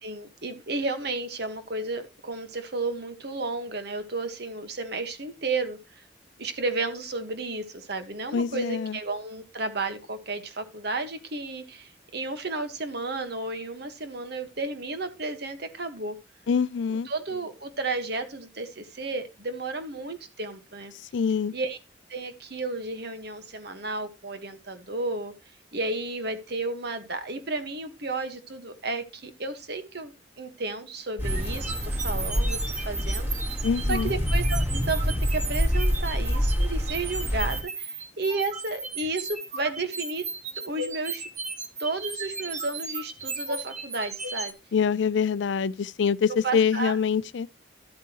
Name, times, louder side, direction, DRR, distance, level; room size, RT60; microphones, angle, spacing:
voice 1, 0.0-6.0 6.4-16.2 17.0-20.9 21.5-21.8 22.1-25.3 25.7-30.1 30.4-33.5 33.9-40.2 40.6-41.3 41.8-44.5 46.3-47.0, right 3 dB, 60° right, 1.4 m, -32 dB
voice 2, 8.3-9.0 16.5-17.1 21.1-21.5 33.6-34.1 44.7-47.5, left 6 dB, 75° left, 0.4 m, -25 dB
sound 1, 31.2-37.6, equal, 10° right, 4.1 m, -27 dB
sound 2, 31.2-44.5, right 3 dB, 40° right, 1.4 m, -36 dB
12.0 x 8.3 x 3.0 m
head